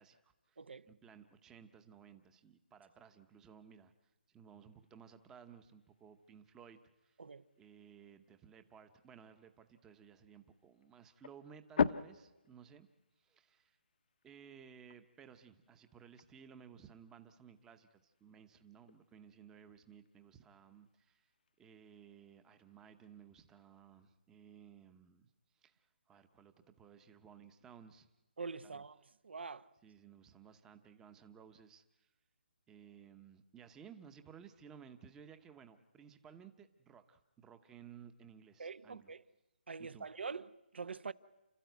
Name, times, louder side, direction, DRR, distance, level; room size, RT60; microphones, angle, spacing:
voice 1, 0.0-0.6 0.9-3.9 4.3-7.2 7.6-12.9 13.2-13.8 14.2-21.3 21.6-25.3 25.5-28.1 28.6-28.8 29.8-32.1 32.7-39.1 39.8-40.1, right 7 dB, 10° right, 0.8 m, -58 dB
sound 1, 4.7-24.0, left 6 dB, 55° left, 0.8 m, -46 dB
voice 2, 28.4-29.0 29.2-29.7 38.6-39.2 39.7-41.1, right 5 dB, 75° right, 0.9 m, -44 dB
30.0 x 13.0 x 9.3 m
hypercardioid pair, 165°, 6 cm